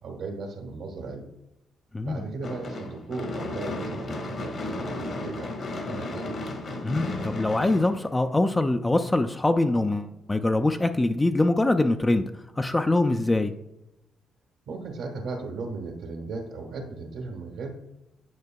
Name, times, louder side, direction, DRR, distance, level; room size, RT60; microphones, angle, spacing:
voice 1, 0.0-1.3 2.0-6.3 14.7-17.8, right 3 dB, 80° right, 1 dB, 1.2 m, -36 dB
Gunshot gunfire / Fireworks, 2.4-8.7, left 2 dB, 55° left, 1.4 m, -34 dB
voice 2, 6.8-12.2 12.6-13.5, left 2 dB, 15° left, 7 dB, 0.3 m, -23 dB
9.4 x 4.8 x 2.3 m, 0.90 s
cardioid pair, 85°, 0 cm